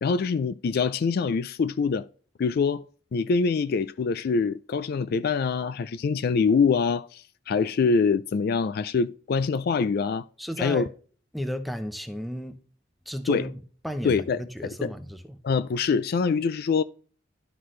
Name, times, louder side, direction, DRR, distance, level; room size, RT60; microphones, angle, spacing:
voice 1, 0.0-2.1 2.4-2.8 3.1-10.2 10.6-10.8 13.3-13.5 14.0-14.4 14.8-14.9 15.4-16.8, left 5 dB, 55° left, 0.3 m, -24 dB
voice 2, 10.4-10.9 11.3-12.6 13.1-13.6 13.8-15.4, equal, ahead, 0.7 m, -33 dB
11.0 x 5.9 x 3.2 m
head